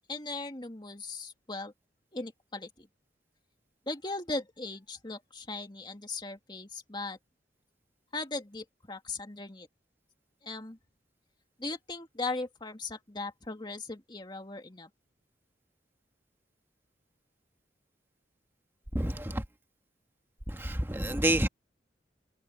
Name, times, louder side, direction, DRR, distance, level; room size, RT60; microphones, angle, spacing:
voice 1, 0.1-1.7 2.1-2.9 3.9-7.2 8.1-9.7 10.4-10.8 11.6-14.9, left 3 dB, 25° left, 2.4 m, -38 dB
voice 2, 18.9-19.4 20.6-21.5, right 1 dB, 15° right, 1.5 m, -28 dB
head